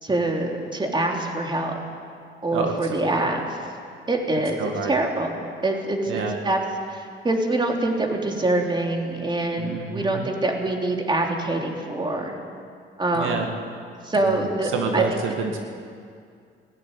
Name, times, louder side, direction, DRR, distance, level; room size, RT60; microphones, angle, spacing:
voice 1, 0.0-1.8 2.4-3.5 4.1-5.3 5.6-6.6 6.9-12.4 13.0-13.5 14.0-15.2, right 2 dB, 25° right, 1 dB, 3.3 m, -25 dB
voice 2, 2.5-3.3 4.6-4.9 6.1-6.4 9.6-10.3 13.1-13.5 14.1-15.6, right 5 dB, 85° right, 3 dB, 2.0 m, -28 dB
19.0 x 14.5 x 9.9 m, 2.3 s
cardioid pair, 90°, 20 cm